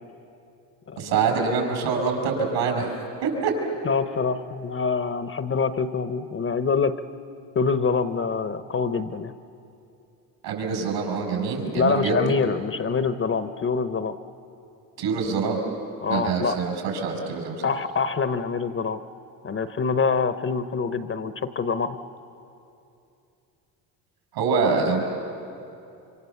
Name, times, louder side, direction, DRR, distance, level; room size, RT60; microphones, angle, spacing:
voice 1, 1.0-2.9 3.2-3.5 10.4-12.2 15.0-15.6 16.1-17.6 24.3-25.0, right 5 dB, 70° right, 3 dB, 6.2 m, -25 dB
voice 2, 3.8-6.9 7.5-9.3 11.7-14.1 16.0-16.6 17.6-19.0 19.4-22.0, left 5 dB, 30° left, 11 dB, 0.9 m, -25 dB
26.0 x 25.0 x 7.2 m, 2.7 s
supercardioid pair, 95°, 46 cm